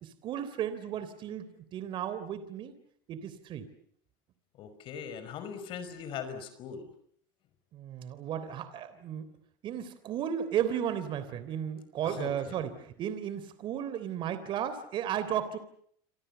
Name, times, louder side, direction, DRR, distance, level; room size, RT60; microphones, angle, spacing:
voice 1, 0.0-2.8 3.1-3.7 7.7-9.3 9.6-15.6, right 9 dB, 50° right, 13 dB, 3.4 m, -34 dB
voice 2, 4.6-6.8 12.0-12.6, left 7 dB, 50° left, 11 dB, 5.4 m, -40 dB
28.5 x 26.5 x 7.0 m, 0.66 s
supercardioid pair, 110°, 11 cm